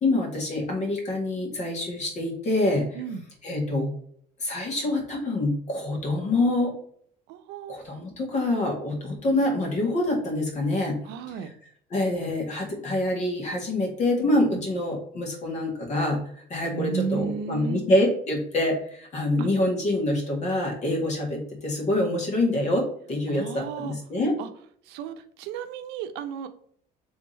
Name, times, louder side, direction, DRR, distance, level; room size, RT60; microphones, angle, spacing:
voice 1, 0.0-2.9 3.4-3.9 4.4-6.7 7.7-11.0 11.9-16.2 16.5-24.3, left 1 dB, 45° left, 0 dB, 1.8 m, -26 dB
voice 2, 7.3-7.7 11.0-11.5 14.5-14.6 16.7-17.8 19.4-19.5 23.3-24.0 24.4-24.5 24.9-26.5, right 6 dB, 90° right, 9 dB, 0.6 m, -33 dB
3.7 x 3.5 x 4.1 m, 0.62 s
cardioid pair, 140°, 17 cm